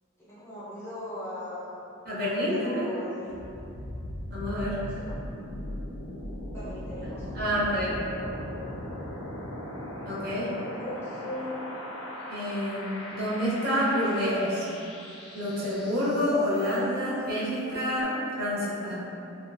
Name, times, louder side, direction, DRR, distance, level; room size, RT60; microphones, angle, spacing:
voice 1, 0.2-1.8 2.2-3.5 4.4-5.1 6.5-7.4 10.4-11.7, left 1 dB, 10° left, -12 dB, 0.6 m, -40 dB
voice 2, 2.1-2.9 4.3-4.8 7.3-8.0 10.1-10.6 12.3-14.7 15.3-18.9, equal, 50° right, -8 dB, 0.6 m, -28 dB
sound 1, 3.3-17.1, left 1 dB, 85° left, 0.4 m, -39 dB
2.4 x 2.3 x 2.4 m, 2.7 s
head